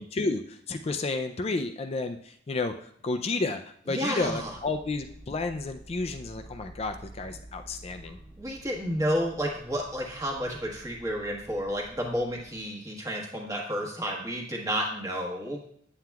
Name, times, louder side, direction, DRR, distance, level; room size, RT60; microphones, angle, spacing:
voice 1, 0.0-2.7 3.0-8.2, left 3 dB, 30° left, 7 dB, 0.4 m, -31 dB
voice 2, 3.9-4.5 8.4-15.6, equal, 20° right, -1 dB, 1.3 m, -31 dB
sound 1, 4.2-12.6, right 1 dB, 5° left, 1.2 m, -50 dB
8.5 x 7.6 x 2.3 m, 0.62 s
head